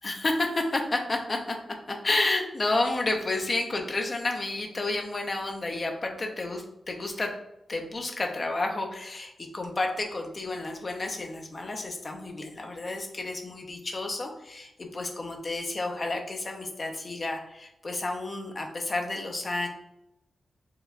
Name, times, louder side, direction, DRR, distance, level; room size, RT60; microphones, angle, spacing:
voice 1, 0.0-1.6 1.9-7.3 7.7-19.7, left 2 dB, 30° left, 2 dB, 0.5 m, -31 dB
4.5 x 2.2 x 2.4 m, 0.84 s
wide cardioid pair, 155°, 0 cm